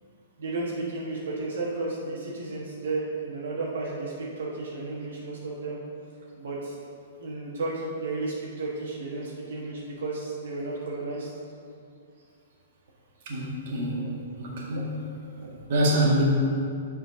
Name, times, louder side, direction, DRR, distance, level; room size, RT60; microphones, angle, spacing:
voice 1, 0.4-5.8 6.4-6.7 7.2-11.3 14.7-14.8 15.3-15.7, right 3 dB, 75° right, -5 dB, 1.4 m, -33 dB
voice 2, 13.3-15.0 15.7-16.2, right 1 dB, 55° right, -3 dB, 1.7 m, -26 dB
6.6 x 4.4 x 5.6 m, 2.4 s
hypercardioid pair, 145°, 0 cm